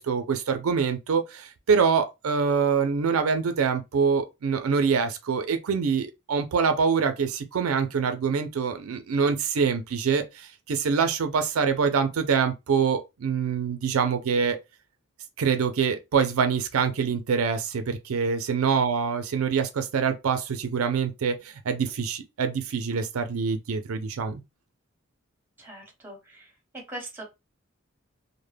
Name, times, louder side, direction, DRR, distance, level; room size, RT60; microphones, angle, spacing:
voice 1, 0.0-14.6 15.4-24.4, right 6 dB, 90° right, 0.4 m, -25 dB
voice 2, 25.6-26.5 26.9-27.2, right 1 dB, 10° right, 0.8 m, -41 dB
2.1 x 2.1 x 3.2 m
head